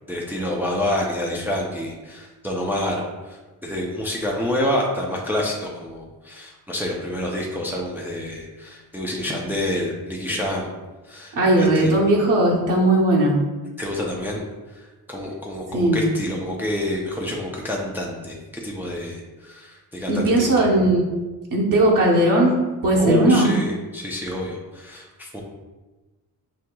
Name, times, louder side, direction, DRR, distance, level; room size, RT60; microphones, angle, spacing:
voice 1, 0.1-10.7 11.0-12.0 13.8-14.4 14.7-20.7 23.0-25.4, left 1 dB, 5° right, -3 dB, 0.4 m, -28 dB
voice 2, 11.3-13.4 15.7-16.0 20.1-21.1 21.5-22.6 22.8-23.5, right 1 dB, 60° right, -3 dB, 0.9 m, -18 dB
6.1 x 2.7 x 2.2 m, 1.2 s
wide cardioid pair, 145°, 37 cm